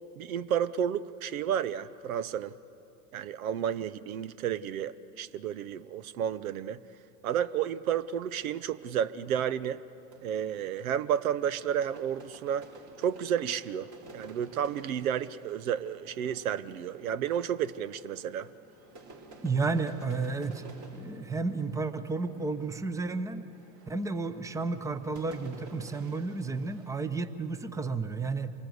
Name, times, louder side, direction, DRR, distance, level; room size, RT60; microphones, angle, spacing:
voice 1, 0.2-2.5 3.1-6.8 7.2-9.8 10.2-12.7 13.0-18.5, right 9 dB, 80° right, 16 dB, 0.8 m, -31 dB
sound 1, 7.9-26.9, right 2 dB, 40° right, 4.5 m, -53 dB
voice 2, 19.4-23.4 23.9-28.5, right 3 dB, 10° right, 12 dB, 0.8 m, -32 dB
26.5 x 19.0 x 8.0 m, 2.7 s
hypercardioid pair, 110°, 41 cm